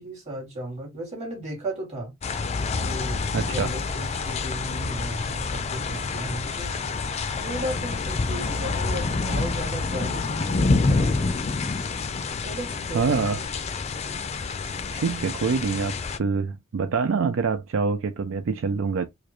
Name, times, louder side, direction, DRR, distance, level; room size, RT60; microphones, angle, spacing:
voice 1, 0.0-2.1 2.8-6.7 7.4-11.4 12.4-13.4 16.4-16.5, right 1 dB, 35° right, 2.4 m, -35 dB
sound 1, 2.2-16.2, left 3 dB, 35° left, 0.4 m, -27 dB
voice 2, 3.3-3.7 12.9-13.4 14.9-19.1, right 5 dB, 75° right, 0.4 m, -25 dB
4.8 x 2.1 x 3.0 m
head